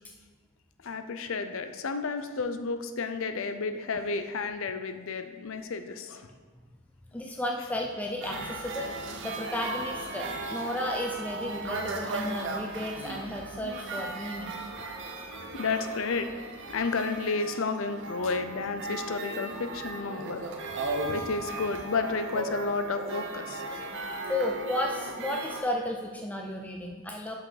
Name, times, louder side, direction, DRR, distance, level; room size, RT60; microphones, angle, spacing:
voice 1, 0.8-6.3 15.5-16.3 16.7-20.4 21.1-23.6, left 4 dB, 60° left, 9 dB, 0.5 m, -31 dB
voice 2, 7.1-14.6 24.3-27.3, left 1 dB, 5° left, 1 dB, 0.4 m, -33 dB
sound 1, 8.2-25.6, right 3 dB, 55° right, 0.8 m, -36 dB
6.0 x 5.7 x 5.0 m, 1.5 s
head